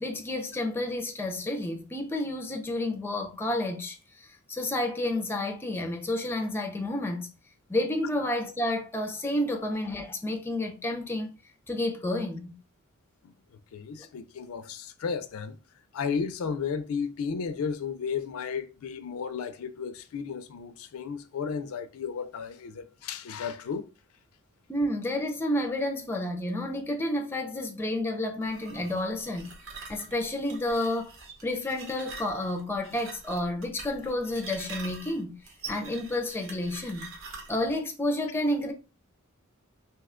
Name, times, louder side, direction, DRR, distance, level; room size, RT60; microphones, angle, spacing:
voice 1, 0.0-7.3 7.7-11.3 11.7-12.6 24.7-29.5 29.9-31.1 31.4-35.4 35.7-37.1 37.5-38.7, left 1 dB, 10° left, 0.4 m, -30 dB
voice 2, 13.7-15.6 15.9-23.9, left 6 dB, 75° left, 0.4 m, -33 dB
sound 1, 28.4-37.7, right 4 dB, 65° right, 0.9 m, -45 dB
2.7 x 2.2 x 3.6 m
head